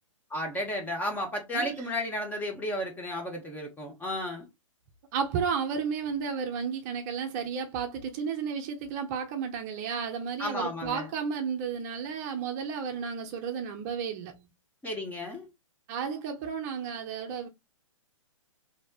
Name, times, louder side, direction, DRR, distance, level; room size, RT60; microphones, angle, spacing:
voice 1, 0.3-4.5 10.4-11.1 14.8-15.5, left 1 dB, 10° left, 0.7 m, -33 dB
voice 2, 5.1-14.5 15.9-17.5, right 6 dB, 30° right, 0.6 m, -33 dB
3.2 x 2.7 x 2.3 m
hypercardioid pair, 135°, 17 cm